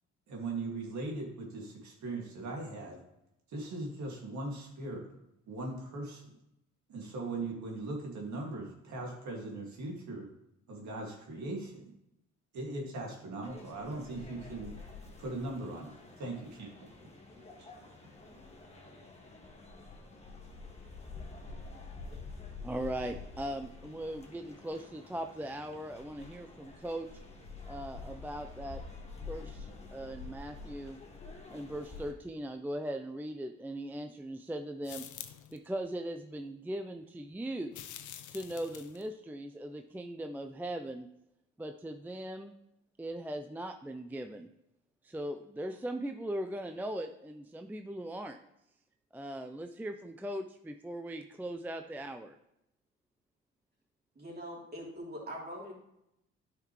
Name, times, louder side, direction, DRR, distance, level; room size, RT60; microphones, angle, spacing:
voice 1, 0.3-3.0 3.5-5.1 5.5-6.4 6.9-10.3 10.7-11.9 12.5-14.8 15.2-16.9, right 2 dB, 70° right, -1 dB, 2.2 m, -39 dB
sound 1, 13.4-32.1, left 3 dB, 20° left, 1.8 m, -48 dB
voice 2, 22.6-27.1 27.7-28.8 29.2-31.0 31.5-35.1 35.5-37.8 38.3-41.1 41.6-42.5 43.0-44.5 45.0-48.4 49.1-52.4, right 1 dB, 5° right, 6 dB, 0.4 m, -39 dB
sound 2, 34.8-35.6 37.7-39.1, left 11 dB, 75° left, 0.7 m, -46 dB
voice 3, 54.1-55.7, equal, 30° right, -3 dB, 3.3 m, -42 dB
10.5 x 5.9 x 3.1 m, 0.83 s
cardioid pair, 90°, 30 cm